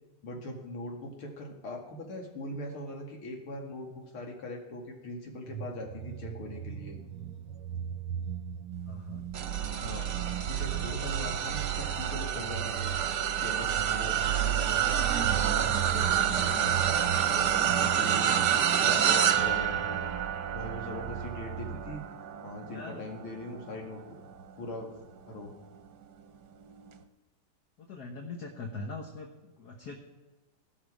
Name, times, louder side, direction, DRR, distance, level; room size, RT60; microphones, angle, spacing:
voice 1, 0.2-7.0 9.8-10.1 10.5-12.9 13.4-20.0 20.5-22.0 22.4-24.0 24.6-24.9 25.3-25.5, left 2 dB, 80° left, 1 dB, 3.1 m, -41 dB
sound 1, 5.5-22.0, right 11 dB, 90° right, 1.6 m, -36 dB
voice 2, 8.9-9.3 22.6-23.0 24.6-24.7 27.8-30.0, left 3 dB, 55° left, 2 dB, 1.5 m, -42 dB
sound 2, 9.3-24.8 25.4-25.6 26.9-27.0, right 9 dB, 60° right, 1.3 m, -29 dB
15.0 x 12.5 x 4.9 m, 1.2 s
omnidirectional pair, 2.3 m